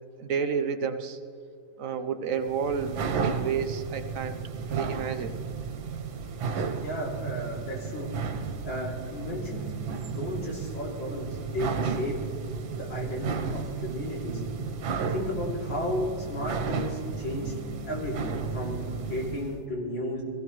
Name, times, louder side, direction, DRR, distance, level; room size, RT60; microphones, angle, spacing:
voice 1, 0.2-1.2 1.8-4.4 4.7-5.3, right 6 dB, 55° right, 7 dB, 1.0 m, -30 dB
sound 1, 2.4-19.6, right 5 dB, 80° right, 1.9 m, -33 dB
voice 2, 6.8-8.4 8.7-12.2 12.7-14.4 15.0-17.5 17.9-20.2, left 1 dB, 75° left, -3 dB, 3.7 m, -34 dB
22.0 x 15.0 x 3.1 m, 2.6 s
omnidirectional pair, 2.1 m